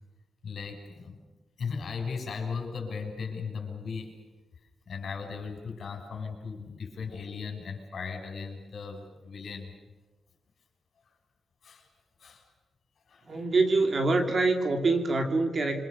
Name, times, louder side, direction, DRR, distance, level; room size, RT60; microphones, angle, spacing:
voice 1, 0.4-1.2 1.6-4.2 4.9-9.7 11.6-11.9 12.2-12.5 13.1-13.4, left 5 dB, 50° left, 4 dB, 6.9 m, -37 dB
voice 2, 13.3-15.9, right 3 dB, 35° right, 5 dB, 2.8 m, -25 dB
28.0 x 26.0 x 6.9 m, 1.1 s
wide cardioid pair, 180°, 0 cm